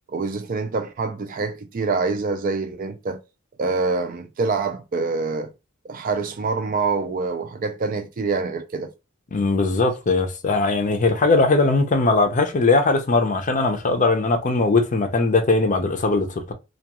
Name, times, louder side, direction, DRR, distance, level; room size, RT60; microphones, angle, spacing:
voice 1, 0.1-3.2 3.6-5.5 5.8-8.9, right 4 dB, 45° right, 0.4 m, -25 dB
voice 2, 9.3-16.5, left 3 dB, 40° left, 0.5 m, -20 dB
2.3 x 2.3 x 2.8 m
head